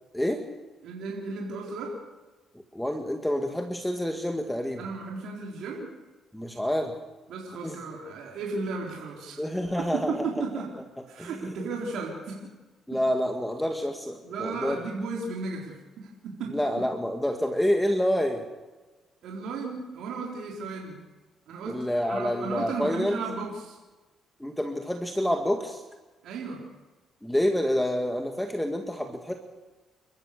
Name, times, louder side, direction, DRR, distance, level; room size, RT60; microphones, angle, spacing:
voice 1, 0.8-2.0 4.8-5.9 7.3-9.5 9.9-10.7 11.1-12.5 14.2-16.6 19.2-21.0 21.5-23.8 26.2-26.7, right 4 dB, 75° right, -2 dB, 4.0 m, -35 dB
voice 2, 2.7-4.9 6.3-6.9 7.6-7.8 9.4-10.3 11.2-11.7 12.9-14.8 16.5-18.4 21.7-23.2 24.4-25.8 27.2-29.3, equal, 5° left, 4 dB, 2.0 m, -28 dB
29.0 x 14.5 x 6.7 m, 1.2 s
cardioid pair, 90°, 0 cm